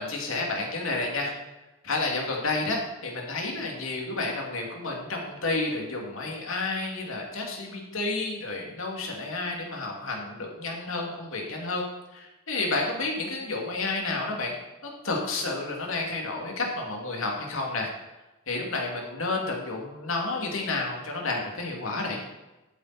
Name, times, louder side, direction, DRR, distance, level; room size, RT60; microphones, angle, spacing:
voice 1, 0.0-1.3 1.8-11.8 12.1-14.6 14.8-17.9 18.5-22.2, left 3 dB, 75° left, 0 dB, 2.8 m, -30 dB
13.5 x 8.6 x 4.4 m, 1.0 s
head